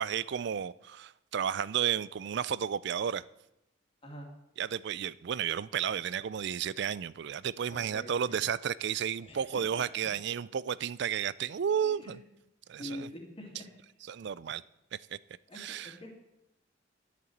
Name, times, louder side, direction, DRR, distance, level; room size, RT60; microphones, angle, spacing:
voice 1, 0.0-3.2 4.6-12.2 12.7-13.1 14.1-14.6 15.6-15.9, right 8 dB, 60° right, 0.4 m, -32 dB
voice 2, 7.7-8.5 9.2-9.8 11.8-12.2 12.8-13.7 15.5-16.1, equal, 30° left, 2.4 m, -45 dB
10.5 x 6.8 x 7.9 m
head